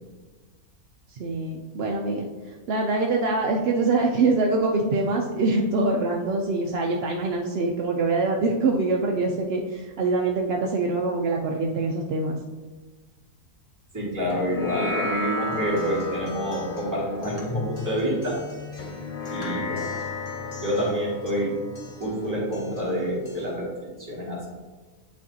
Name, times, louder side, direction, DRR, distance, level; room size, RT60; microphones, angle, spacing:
voice 1, 1.1-12.4, right 3 dB, 65° right, 1 dB, 0.6 m, -24 dB
voice 2, 13.9-18.4 19.3-19.9 20.6-21.5 22.0-23.7 24.0-24.5, equal, 10° right, -6 dB, 1.9 m, -27 dB
sound 1, 14.3-23.0, left 2 dB, 70° left, 0.4 m, -34 dB
Acoustic guitar, 15.5-23.5, left 2 dB, 30° left, 0.8 m, -41 dB
8.5 x 4.4 x 2.7 m, 1.3 s
omnidirectional pair, 1.6 m